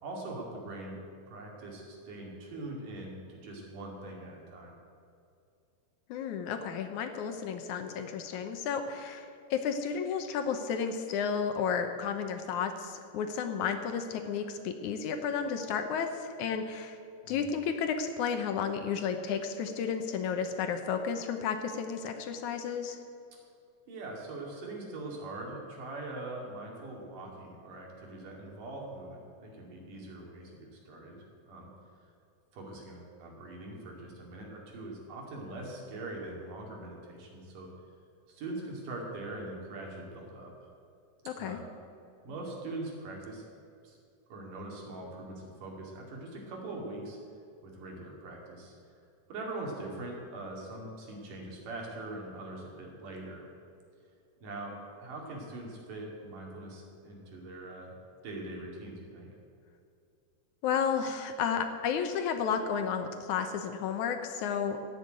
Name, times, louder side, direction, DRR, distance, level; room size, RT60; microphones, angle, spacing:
voice 1, 0.0-1.0 1.3-4.7 17.2-17.5 23.9-31.7 32.0-32.1 32.5-37.7 38.3-40.5 41.4-41.6 42.2-43.5 43.8-44.0 44.3-47.2 47.6-49.0 49.3-53.5 54.4-59.3, right 2 dB, 75° right, -1 dB, 4.0 m, -42 dB
voice 2, 6.1-17.0 17.3-23.0 41.3-41.6 60.6-64.8, left 6 dB, 70° left, 7 dB, 2.2 m, -32 dB
16.0 x 7.1 x 9.1 m, 2.5 s
omnidirectional pair, 3.8 m